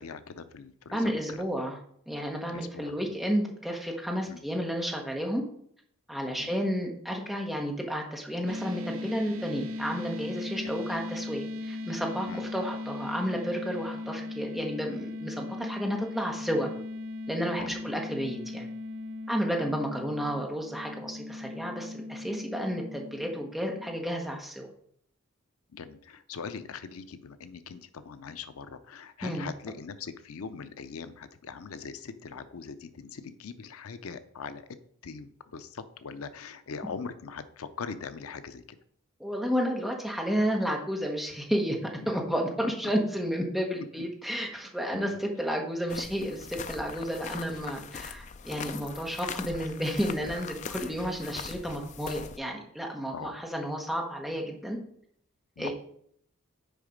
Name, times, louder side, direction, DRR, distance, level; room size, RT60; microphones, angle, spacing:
voice 1, 0.0-1.4 2.5-2.9 4.3-4.4 6.4-6.6 12.3-12.5 17.6-17.8 25.7-38.6 42.0-42.1 43.7-43.9 44.9-45.2 53.1-53.3 55.6-55.7, left 5 dB, 85° left, 12 dB, 0.5 m, -41 dB
voice 2, 0.9-1.8 2.1-5.4 6.1-16.7 17.3-18.7 19.3-24.7 29.2-29.5 39.2-41.8 42.1-54.8 55.6-55.7, equal, ahead, 0 dB, 1.1 m, -31 dB
sound 1, 8.5-24.0, left 2 dB, 80° right, 0.8 m, -38 dB
sound 2, 45.9-52.4, left 6 dB, 35° left, 0.3 m, -41 dB
6.9 x 5.0 x 5.0 m, 0.66 s
head